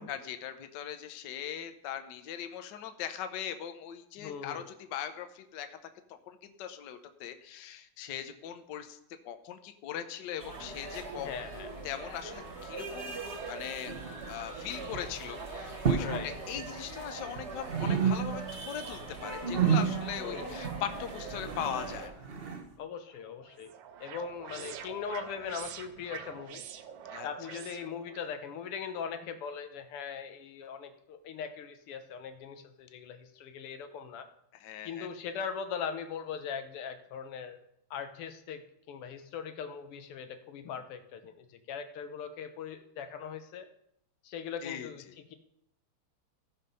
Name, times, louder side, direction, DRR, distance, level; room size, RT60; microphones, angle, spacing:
voice 1, 0.0-4.6 4.9-5.8 6.1-9.0 9.2-11.3 11.8-13.9 14.3-22.3 27.1-27.3 34.6-35.1 44.6-44.9, left 9 dB, 65° left, 8 dB, 1.3 m, -40 dB
voice 2, 4.2-4.7 11.2-11.7 16.0-16.3 20.2-20.6 22.8-23.7 24.0-26.6 27.2-34.3 34.8-37.6 37.9-43.7 44.2-45.3, left 6 dB, 90° left, 8 dB, 1.9 m, -40 dB
sound 1, 10.4-22.1, right 3 dB, 35° right, 1.5 m, -42 dB
sound 2, 13.9-14.6 14.8-15.2 15.7-16.3 16.6-17.4 17.7-18.6 18.9-22.7, right 7 dB, 50° right, 0.7 m, -31 dB
sound 3, 23.1-28.3, right 8 dB, 70° right, 1.2 m, -46 dB
15.0 x 5.6 x 5.4 m, 0.77 s
omnidirectional pair, 2.4 m